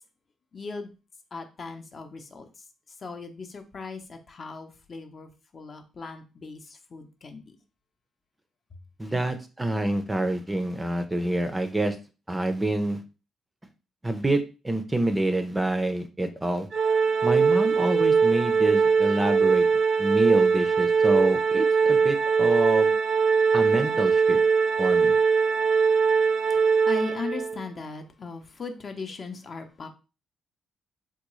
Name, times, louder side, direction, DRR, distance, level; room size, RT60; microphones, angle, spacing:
voice 1, 0.5-0.9 1.3-7.6 9.1-9.3 25.6-25.7 26.2-29.9, left 4 dB, 45° left, 5 dB, 0.6 m, -38 dB
voice 2, 9.0-12.0 12.3-13.0 14.0-16.7 17.2-19.7 20.0-22.9 23.5-24.4 24.8-25.2, right 1 dB, 15° right, 7 dB, 0.5 m, -27 dB
Organ, 16.7-27.6, right 5 dB, 60° right, 0.5 m, -21 dB
3.6 x 2.3 x 3.0 m, 0.31 s
cardioid pair, 90°, 0 cm